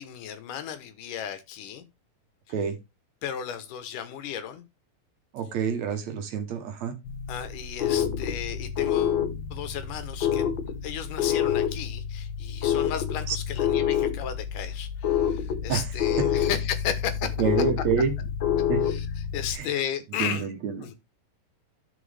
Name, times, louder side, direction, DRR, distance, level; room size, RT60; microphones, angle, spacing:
voice 1, 0.0-1.8 3.2-4.6 7.3-9.2 9.5-17.3 18.8-20.5 20.8-20.9, left 9 dB, 80° left, 2.7 m, -34 dB
voice 2, 5.3-6.9 13.3-13.4 15.7-15.8 17.4-18.1 18.7-18.8 19.6-19.7 20.2-20.9, right 7 dB, 65° right, 2.3 m, -27 dB
sound 1, 7.0-19.5, left 9 dB, 65° left, 1.2 m, -28 dB
11.5 x 6.0 x 3.4 m
omnidirectional pair, 3.7 m